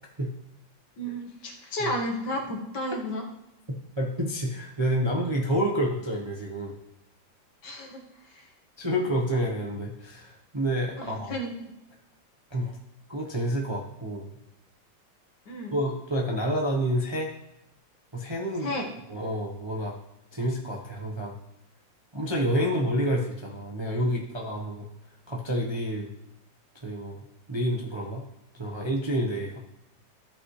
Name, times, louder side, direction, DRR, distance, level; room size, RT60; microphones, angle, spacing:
voice 1, 1.0-3.2 7.6-8.0 8.3-8.4 11.0-11.5 15.5-15.7 18.6-18.9, equal, 65° left, 1 dB, 2.0 m, -32 dB
voice 2, 4.0-6.7 8.8-11.3 12.5-12.8 13.1-14.3 15.7-17.3 18.1-18.7 19.1-20.0 20.3-21.3 22.1-24.9 25.3-26.1 26.8-28.2 28.5-29.7, equal, 20° right, -2 dB, 0.7 m, -29 dB
14.0 x 5.5 x 3.2 m, 0.87 s
omnidirectional pair, 2.1 m